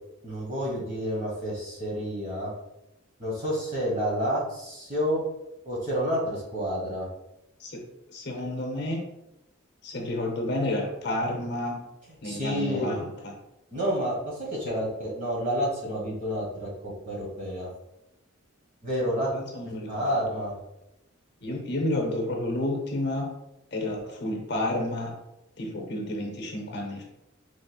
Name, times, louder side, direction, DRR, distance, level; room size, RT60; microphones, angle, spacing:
voice 1, 0.2-2.5 3.2-5.2 5.6-7.1 12.2-13.0 13.7-17.7 18.8-19.3 19.6-20.5, equal, 35° right, -4 dB, 1.4 m, -29 dB
voice 2, 7.6-9.0 9.8-11.8 12.2-13.4 14.7-14.8 19.3-20.1 21.4-23.3 23.7-25.1 25.6-27.0, left 1 dB, 50° left, 2 dB, 0.7 m, -30 dB
5.2 x 3.2 x 2.3 m, 0.89 s
head